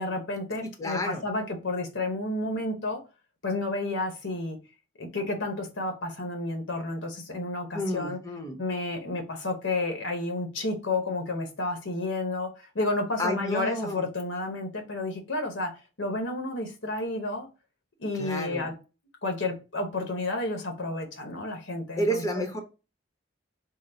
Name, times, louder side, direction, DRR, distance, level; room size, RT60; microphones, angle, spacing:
voice 1, 0.0-3.0 3.4-4.6 5.0-8.2 8.6-15.7 16.0-17.5 18.0-18.7 19.2-22.4, left 2 dB, 75° left, 4 dB, 0.9 m, -31 dB
voice 2, 0.6-1.2 7.7-8.6 13.2-14.1 18.2-18.7 22.0-22.6, equal, 20° left, 4 dB, 0.7 m, -30 dB
3.8 x 2.0 x 4.2 m, 0.31 s
head